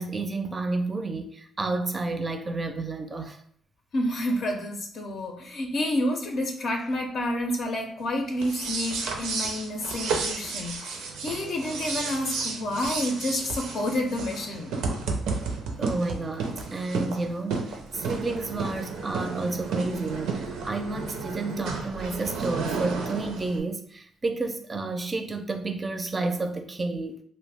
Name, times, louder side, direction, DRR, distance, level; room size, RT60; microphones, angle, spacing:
voice 1, 0.0-3.4 15.8-27.2, right 3 dB, 30° right, 6 dB, 0.4 m, -31 dB
voice 2, 3.9-14.7, left 1 dB, 60° left, 2 dB, 0.5 m, -29 dB
sound 1, 8.3-23.6, right 4 dB, 90° right, 0.5 m, -32 dB
2.5 x 2.1 x 3.3 m, 0.64 s
cardioid pair, 90°, 0 cm